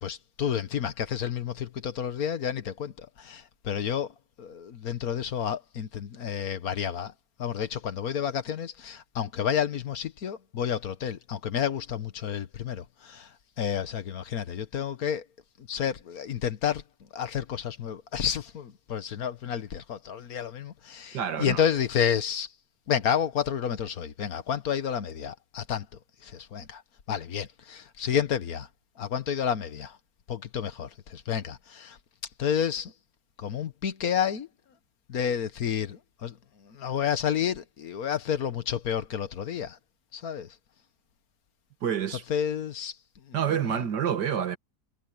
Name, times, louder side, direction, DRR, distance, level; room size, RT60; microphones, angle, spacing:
voice 1, 0.0-7.1 7.4-15.2 15.6-16.8 17.1-22.5 22.9-25.9 26.2-26.8 27.1-28.7 29.0-30.0 30.3-32.0 32.4-32.9 33.4-34.5 35.1-39.8 40.1-40.5 42.3-43.0 43.3-43.4 43.6-43.8, left 8 dB, 60° left, 1.7 m, -30 dB
voice 2, 21.1-21.6 41.8-42.2 43.3-44.6, right 8 dB, 85° right, 2.1 m, -28 dB
omnidirectional pair, 1.8 m